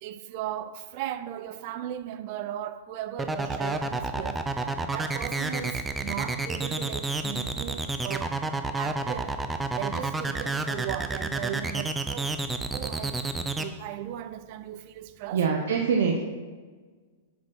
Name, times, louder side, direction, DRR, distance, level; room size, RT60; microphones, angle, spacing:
voice 1, 0.0-8.4 8.8-12.4 12.7-15.4, right 11 dB, 50° right, 0.6 m, -37 dB
sound 1, 3.2-13.6, right 3 dB, 10° right, 0.7 m, -29 dB
voice 2, 15.3-16.2, right 6 dB, 70° right, 1.0 m, -24 dB
8.3 x 6.0 x 6.2 m
hypercardioid pair, 130°, 0 cm